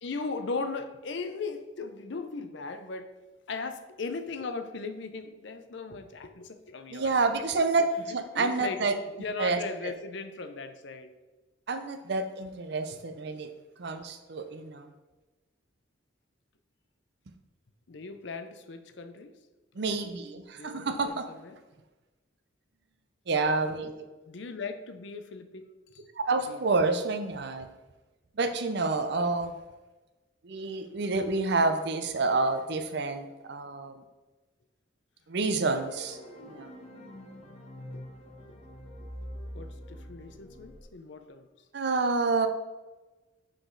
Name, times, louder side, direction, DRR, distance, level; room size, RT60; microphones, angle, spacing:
voice 1, 0.0-3.1 3.5-7.1 8.3-8.8 9.1-11.1 12.9-13.0 17.9-19.3 20.5-21.6 24.3-25.7 25.9-26.0 26.5-26.8 37.9-38.0 38.5-38.6 39.0-39.1 39.5-41.5, left 4 dB, 60° left, 8 dB, 0.6 m, -38 dB
voice 2, 6.9-8.9 9.4-9.9 11.7-13.5 13.8-14.9 19.8-21.3 23.3-23.9 26.3-27.7 28.4-29.5 30.4-33.9 35.3-36.2 36.5-36.7 41.7-42.5, right 3 dB, 55° right, 8 dB, 0.6 m, -28 dB
sound 1, 35.7-40.8, equal, 35° left, 1.1 m, -44 dB
6.0 x 5.0 x 3.8 m, 1.1 s
head